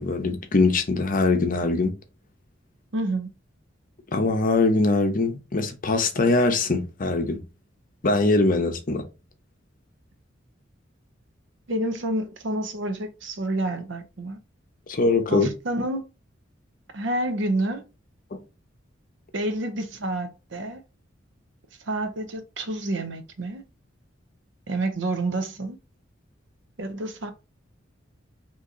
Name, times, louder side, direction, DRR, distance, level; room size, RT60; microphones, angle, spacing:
voice 1, 0.0-1.9 4.1-7.4 8.0-9.0 14.9-15.5, left 3 dB, 45° left, 0.7 m, -22 dB
voice 2, 2.9-3.3 11.7-14.4 15.3-16.0 16.9-17.8 19.3-20.8 21.8-23.6 24.7-25.8 26.8-27.3, right 1 dB, 70° right, 0.7 m, -28 dB
2.8 x 2.8 x 3.6 m
head